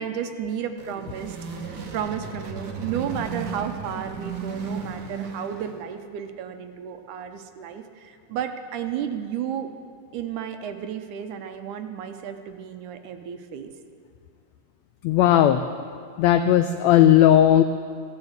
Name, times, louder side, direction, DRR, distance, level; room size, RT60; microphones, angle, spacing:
voice 1, 0.0-9.7 10.1-13.7, right 8 dB, 75° right, 7 dB, 2.2 m, -33 dB
sound 1, 0.6-5.9, right 5 dB, 50° right, 1.3 m, -35 dB
voice 2, 15.0-15.6 16.2-17.6, left 11 dB, 85° left, 9 dB, 1.5 m, -16 dB
15.5 x 10.5 x 8.0 m, 2.3 s
omnidirectional pair, 3.7 m